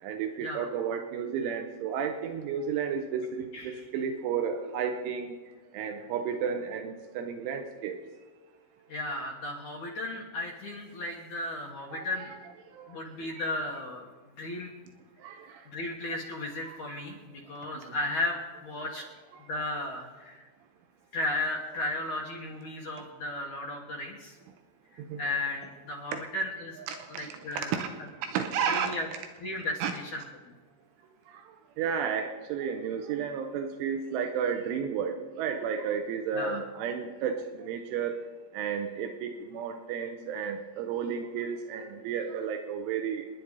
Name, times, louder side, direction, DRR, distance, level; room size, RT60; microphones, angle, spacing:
voice 1, 0.0-5.4 5.7-8.0 11.9-12.4 12.7-12.9 13.3-13.4 15.2-15.7 16.7-16.8 19.3-19.4 25.0-25.2 26.1-26.2 26.9-27.9 28.2-28.9 29.8-29.9 31.3-31.4 31.8-38.2 38.5-43.3, right 7 dB, 85° right, 6 dB, 3.3 m, -32 dB
voice 2, 8.9-12.3 12.9-14.1 14.4-14.7 15.7-19.0 19.5-20.5 21.1-24.4 24.9-26.8 27.1-27.8 28.7-29.1 29.4-30.2 36.3-36.6, left 2 dB, 60° left, -2 dB, 2.0 m, -35 dB
29.5 x 10.5 x 4.1 m, 1.3 s
omnidirectional pair, 5.7 m